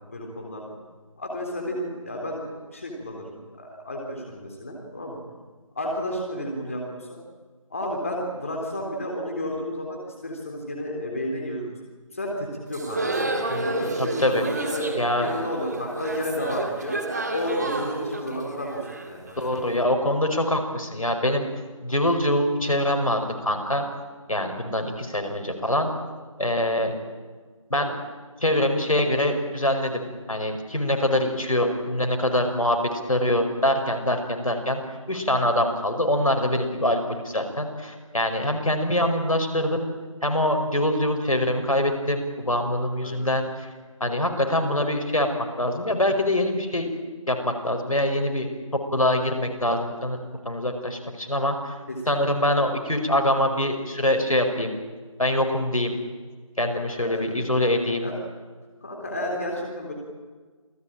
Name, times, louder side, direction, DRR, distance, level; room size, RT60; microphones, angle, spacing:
voice 1, 0.1-0.8 1.2-5.2 5.7-7.2 7.7-11.7 12.1-13.0 13.6-14.9 15.2-17.0 17.3-19.4 43.0-43.1 51.9-52.0 57.0-57.3 58.0-58.1 58.8-59.9, equal, 25° left, 0 dB, 3.4 m, -32 dB
sound 1, 12.7-19.7, right 2 dB, 30° right, 2.2 m, -30 dB
voice 2, 13.5-14.4 15.0-15.3 19.4-21.5 21.8-23.8 24.3-25.9 26.4-26.9 27.7-27.9 28.4-34.8 35.1-39.9 40.2-43.7 44.0-45.3 45.6-46.9 47.3-48.5 48.9-50.2 50.4-51.7 52.1-54.8 55.2-56.0 56.6-58.1, left 1 dB, 75° left, 5 dB, 5.2 m, -24 dB
28.0 x 17.5 x 8.9 m, 1.4 s
figure-of-eight pair, 175°, 18 cm